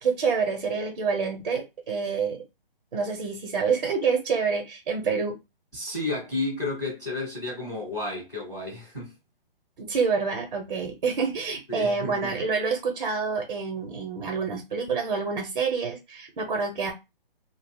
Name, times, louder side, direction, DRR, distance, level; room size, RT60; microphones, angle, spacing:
voice 1, 0.0-2.4 2.9-5.4 9.8-16.9, right 5 dB, 45° right, 0.7 m, -27 dB
voice 2, 5.7-9.1 11.7-12.3, left 2 dB, 5° left, 0.4 m, -32 dB
2.3 x 2.0 x 3.4 m
figure-of-eight pair, 145°, 30 cm